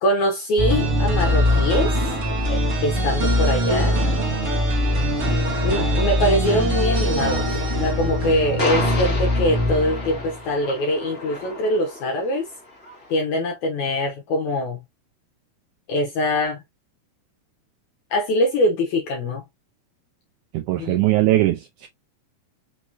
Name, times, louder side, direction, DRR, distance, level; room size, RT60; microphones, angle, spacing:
voice 1, 0.0-1.9 2.5-4.0 5.6-12.5 13.1-14.8 15.9-16.6 18.1-19.4 20.8-21.1, left 1 dB, 70° left, 1.9 m, -23 dB
sound 1, 0.6-10.4, equal, 60° right, 0.8 m, -22 dB
sound 2, 5.7-13.2, left 2 dB, 35° left, 1.1 m, -33 dB
voice 2, 20.5-21.9, right 16 dB, 90° right, 1.8 m, -20 dB
5.7 x 3.0 x 2.5 m
omnidirectional pair, 4.2 m